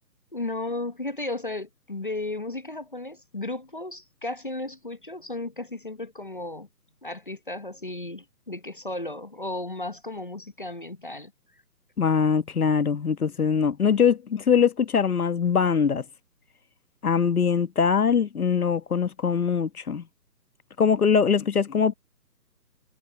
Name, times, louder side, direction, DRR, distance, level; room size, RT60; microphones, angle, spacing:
voice 1, 0.3-6.7 7.0-11.3, left 2 dB, 30° left, 0.9 m, -34 dB
voice 2, 12.0-16.0 17.0-20.0 20.8-21.9, left 6 dB, 60° left, 1.4 m, -22 dB
hypercardioid pair, 180°, 49 cm